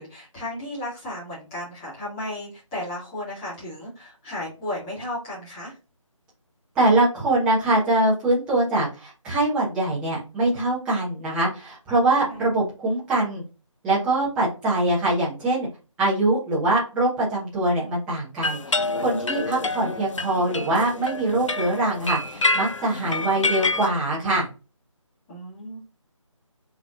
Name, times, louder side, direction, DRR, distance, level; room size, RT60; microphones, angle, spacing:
voice 1, 0.0-5.7 12.3-12.4 23.0-23.2 25.3-25.8, left 1 dB, 10° left, -8 dB, 1.7 m, -34 dB
voice 2, 6.7-13.4 13.8-15.7 16.0-24.5, right 2 dB, 5° right, -7 dB, 1.0 m, -23 dB
sound 1, 18.4-23.9, left 3 dB, 65° left, 0.6 m, -27 dB
5.8 x 3.2 x 2.5 m, 0.31 s
figure-of-eight pair, 160°, 17 cm